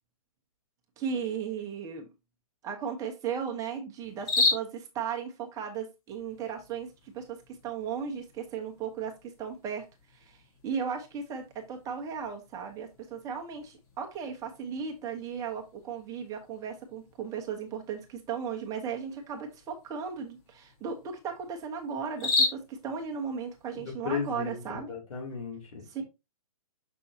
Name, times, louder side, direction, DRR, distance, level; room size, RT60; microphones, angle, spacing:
voice 1, 1.0-2.1 2.6-9.8 10.1-24.9 25.9-26.0, right 6 dB, 20° right, 1.0 m, -36 dB
sound 1, 4.0-23.9, left 3 dB, 35° left, 2.9 m, -37 dB
voice 2, 23.7-24.6 24.9-26.0, left 6 dB, 65° left, 3.2 m, -35 dB
6.8 x 5.5 x 2.8 m
hypercardioid pair, 145°, 18 cm